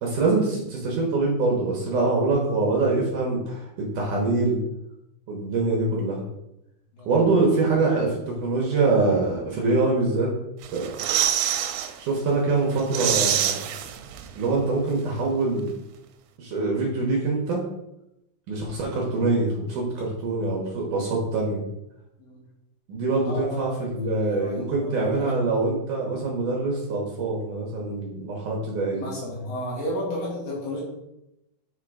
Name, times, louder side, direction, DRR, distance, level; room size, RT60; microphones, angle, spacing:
voice 1, 0.0-3.7 3.9-4.6 5.3-6.2 7.1-10.3 10.7-10.9 12.0-13.7 14.4-15.7 16.4-17.6 18.5-21.6 22.9-29.1, right 3 dB, 65° right, -2 dB, 2.3 m, -24 dB
sound 1, 10.6-11.9 12.3-12.4 12.7-14.5 14.7-14.8, right 10 dB, 85° right, 2.6 m, -25 dB
voice 2, 23.2-25.3 28.9-30.8, left 1 dB, 65° left, -4 dB, 3.5 m, -33 dB
6.7 x 3.7 x 5.0 m, 0.86 s
omnidirectional pair, 4.6 m